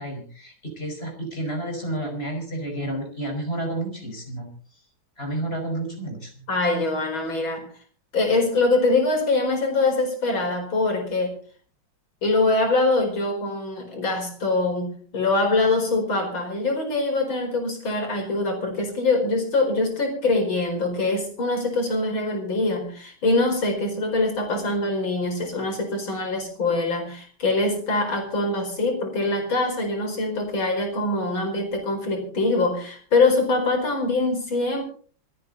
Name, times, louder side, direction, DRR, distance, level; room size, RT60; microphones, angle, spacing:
voice 1, 0.0-4.5 5.2-6.5, right 1 dB, 30° left, 3 dB, 5.4 m, -31 dB
voice 2, 6.5-7.7 8.1-11.4 12.2-34.8, left 2 dB, 75° left, 3 dB, 5.4 m, -23 dB
27.0 x 9.5 x 4.1 m, 0.43 s
omnidirectional pair, 2.2 m